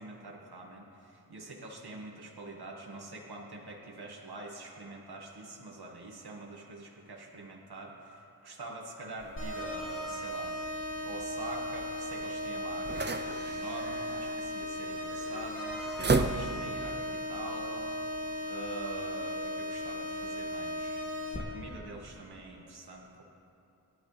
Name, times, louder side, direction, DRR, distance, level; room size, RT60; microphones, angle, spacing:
voice 1, 0.0-10.5 11.0-15.8 16.1-17.8 18.5-21.0 21.4-23.2, right 2 dB, 75° right, -1 dB, 2.0 m, -45 dB
sound 1, 9.2-16.9, right 3 dB, 25° right, 0.6 m, -36 dB
sound 2, 9.4-21.4, left 1 dB, 30° left, 2.6 m, -37 dB
28.0 x 12.0 x 3.5 m, 2.8 s
wide cardioid pair, 95°, 39 cm